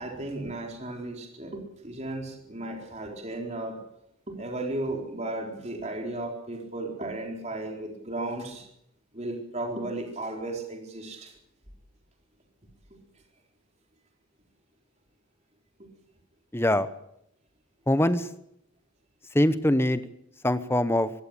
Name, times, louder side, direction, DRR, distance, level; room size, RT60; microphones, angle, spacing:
voice 1, 0.0-3.8 4.3-8.7 9.1-11.3 15.8-15.9, right 2 dB, 30° right, 1 dB, 4.2 m, -35 dB
voice 2, 16.5-16.9 17.9-18.3 19.3-20.0 20.4-21.1, left 1 dB, 10° left, 12 dB, 1.0 m, -23 dB
24.0 x 15.5 x 8.5 m, 0.78 s
head